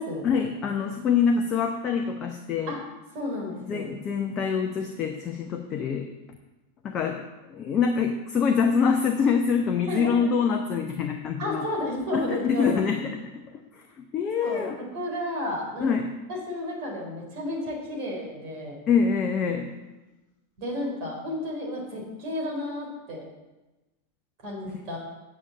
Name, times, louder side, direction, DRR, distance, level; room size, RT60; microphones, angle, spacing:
voice 1, 0.2-2.7 3.7-6.4 6.8-7.2 7.5-11.7 12.1-14.8 15.8-16.1 18.9-19.7 24.7-24.8, left 6 dB, 30° left, 4 dB, 0.9 m, -25 dB
voice 2, 3.1-3.9 9.9-10.1 11.4-12.8 14.4-14.6 14.9-16.0 16.5-18.8 20.6-23.2 24.4-25.0, left 1 dB, 45° right, -1 dB, 4.2 m, -32 dB
8.7 x 6.8 x 7.4 m, 1.1 s
figure-of-eight pair, 90°, 0 cm